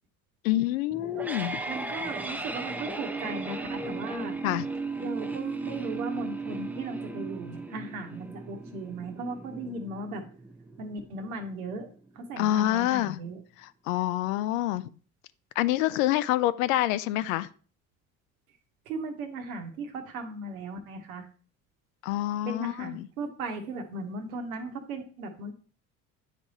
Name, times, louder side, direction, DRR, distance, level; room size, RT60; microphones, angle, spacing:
voice 1, 0.4-1.6 4.4-4.6 12.4-13.2 13.9-14.9 15.6-17.5 22.0-23.1, left 15 dB, 70° left, 0.5 m, -27 dB
sound 1, 0.9-11.9, right 3 dB, 5° right, 0.4 m, -36 dB
voice 2, 1.7-4.4 5.0-10.2 10.8-11.9 12.1-13.4 18.9-21.3 22.4-25.5, right 2 dB, 75° right, 1.1 m, -37 dB
9.1 x 3.5 x 4.0 m
figure-of-eight pair, 55°, 42 cm